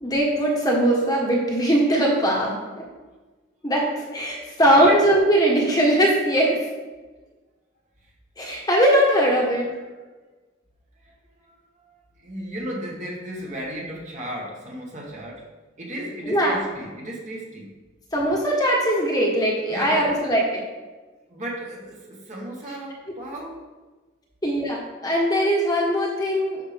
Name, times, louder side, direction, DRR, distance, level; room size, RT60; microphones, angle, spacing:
voice 1, 0.0-2.6 3.6-6.6 8.4-9.7 16.2-16.6 18.1-20.6 24.4-26.6, right 1 dB, 20° left, -3 dB, 1.4 m, -20 dB
voice 2, 4.7-5.0 11.0-11.2 11.4-15.5 15.8-17.8 19.7-20.1 21.3-23.6, right 1 dB, 40° right, -3 dB, 1.8 m, -34 dB
11.0 x 5.8 x 3.5 m, 1.2 s
head